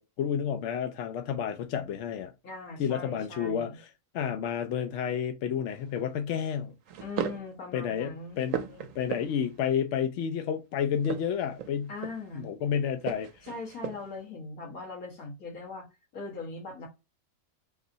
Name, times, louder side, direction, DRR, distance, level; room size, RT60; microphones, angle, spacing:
voice 1, 0.0-2.3 2.8-3.9 4.1-6.7 7.7-11.9 12.3-13.5, left 8 dB, 65° left, 0.8 m, -31 dB
voice 2, 2.4-3.8 7.0-8.4 11.9-12.5 13.4-15.9 16.1-16.9, left 3 dB, 85° left, 2.0 m, -40 dB
sound 1, 5.7-6.0 6.9-7.5 8.0-9.6 10.9-12.4 13.0-14.2, right 9 dB, 75° right, 1.0 m, -37 dB
4.0 x 2.6 x 3.9 m
omnidirectional pair, 1.5 m